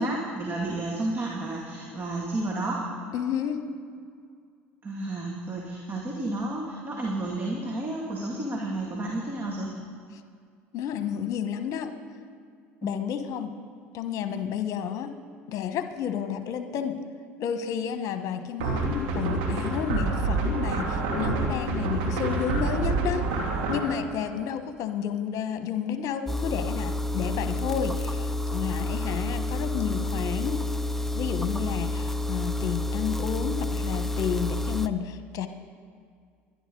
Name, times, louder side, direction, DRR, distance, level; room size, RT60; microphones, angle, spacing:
voice 1, 0.0-2.8 4.8-9.7 12.8-13.0, right 2 dB, 30° right, -2 dB, 2.3 m, -31 dB
voice 2, 3.1-3.6 10.7-11.9 12.8-13.5 13.9-15.1 15.5-17.0 17.4-23.2 23.7-30.6 31.1-35.5, left 8 dB, 55° left, 9 dB, 1.2 m, -31 dB
sound 1, 18.6-23.8, right 3 dB, 70° right, 2.9 m, -27 dB
sound 2, 26.3-34.9, left 1 dB, 5° left, 0.6 m, -29 dB
23.0 x 11.0 x 3.9 m, 2.1 s
hypercardioid pair, 75°, 7 cm